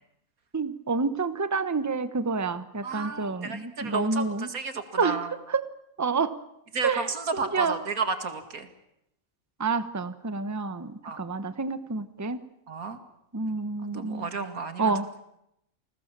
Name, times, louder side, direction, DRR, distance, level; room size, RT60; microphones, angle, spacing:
voice 1, 0.5-4.5 5.0-5.6 6.0-6.3 6.8-7.1 7.3-7.8 9.6-12.4 13.3-14.3 14.8-15.1, right 4 dB, 15° right, 12 dB, 0.9 m, -28 dB
voice 2, 2.8-5.3 6.7-8.7 11.0-11.2 12.7-13.0 13.8-14.9, right 4 dB, 90° right, 8 dB, 2.6 m, -32 dB
29.5 x 20.0 x 7.4 m, 0.80 s
omnidirectional pair, 1.5 m